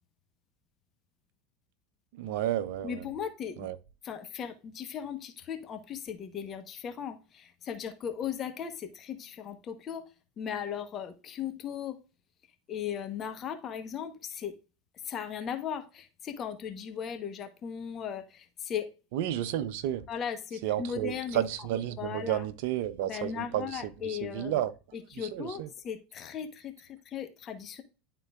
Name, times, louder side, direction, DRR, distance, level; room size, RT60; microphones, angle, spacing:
voice 1, 2.1-3.0 3.6-3.7 19.1-20.0 20.6-24.7 25.2-25.7, right 12 dB, 65° right, 0.6 m, -32 dB
voice 2, 2.8-3.7 4.0-12.0 12.7-14.6 15.0-18.9 20.1-21.4 22.0-22.4 23.0-24.6 24.9-27.8, left 8 dB, 35° left, 0.9 m, -37 dB
11.0 x 3.7 x 2.3 m
hypercardioid pair, 85°, 0 cm